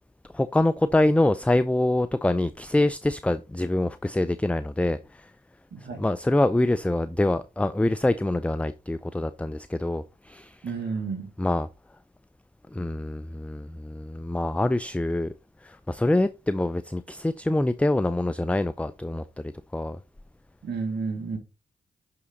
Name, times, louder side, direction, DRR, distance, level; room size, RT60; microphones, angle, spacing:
voice 1, 0.3-5.3 6.0-10.7 11.4-11.7 12.7-15.3 15.6-20.0, left 1 dB, 5° left, 0.5 m, -25 dB
voice 2, 5.7-6.0 10.6-11.3 20.6-21.4, right 4 dB, 55° right, 2.4 m, -31 dB
6.2 x 5.7 x 3.9 m
hypercardioid pair, 40°, 20 cm